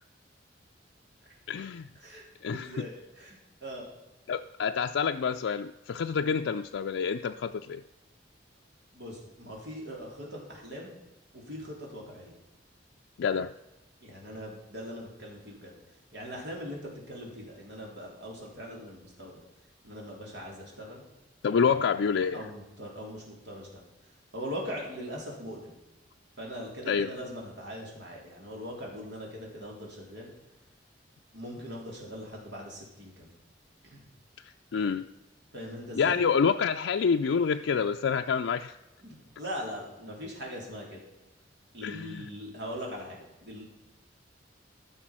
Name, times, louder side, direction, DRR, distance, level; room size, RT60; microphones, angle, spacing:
voice 1, 1.5-1.9 2.4-2.8 4.3-7.8 13.2-13.5 21.4-22.5 26.9-27.1 34.7-35.0 36.0-38.7 41.8-42.3, left 6 dB, 85° left, 5 dB, 0.4 m, -27 dB
voice 2, 2.5-3.9 8.9-10.9 11.3-12.3 14.0-15.7 16.1-19.4 19.8-21.0 21.6-21.9 22.3-23.8 24.3-25.7 26.4-30.3 31.3-33.3 33.8-34.1 35.5-36.2 39.0-41.0 41.7-43.7, equal, 65° right, -1 dB, 3.7 m, -41 dB
14.0 x 6.7 x 6.1 m, 1.0 s
head